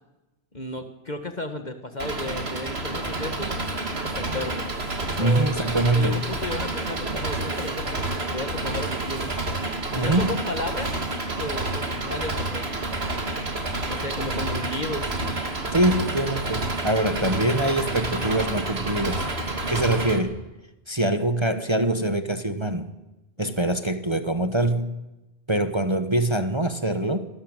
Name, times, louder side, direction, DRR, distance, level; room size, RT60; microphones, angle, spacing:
voice 1, 0.5-3.5 4.0-4.7 5.2-5.5 5.9-9.7 9.9-11.0 11.4-12.8 13.8-15.2 23.4-23.7, left 2 dB, 40° left, 7 dB, 1.8 m, -34 dB
Engine, 2.0-20.2, right 2 dB, 65° right, 2.8 m, -29 dB
voice 2, 5.2-6.2 9.9-10.3 15.7-19.3 19.7-20.4 20.9-22.9 23.4-25.0 25.5-27.3, right 1 dB, 25° right, 9 dB, 1.2 m, -24 dB
26.5 x 18.5 x 9.0 m, 1.0 s
omnidirectional pair, 1.2 m